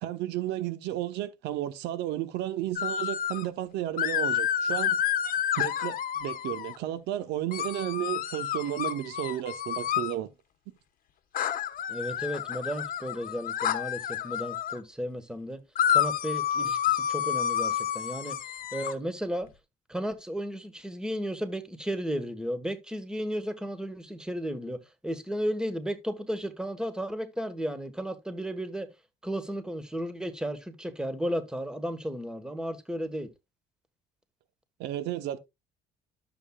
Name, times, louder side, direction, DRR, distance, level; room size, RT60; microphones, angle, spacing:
voice 1, 0.0-5.0 5.6-10.3 34.8-35.4, right 13 dB, 85° right, 0.9 m, -33 dB
sound 1, 2.8-3.4 4.0-6.8 7.5-10.1 11.3-14.8 15.8-18.9, left 10 dB, 55° left, 1.0 m, -29 dB
voice 2, 11.9-15.6 15.9-18.4 18.7-19.5 19.9-28.9 29.2-33.3, equal, 5° right, 1.2 m, -34 dB
11.0 x 7.1 x 2.3 m
cardioid pair, 110°, 17 cm